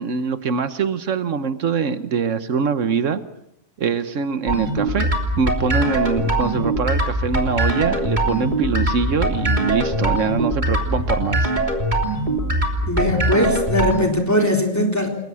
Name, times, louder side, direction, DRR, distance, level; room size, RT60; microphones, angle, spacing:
voice 1, 0.0-3.2 3.8-5.1 5.4-11.5, right 5 dB, 85° right, 11 dB, 1.5 m, -23 dB
sound 1, 4.5-14.1, right 1 dB, 35° right, 3.4 m, -22 dB
voice 2, 12.8-15.1, left 1 dB, 15° left, 1 dB, 4.0 m, -20 dB
29.5 x 21.0 x 6.3 m, 0.78 s
omnidirectional pair, 1.3 m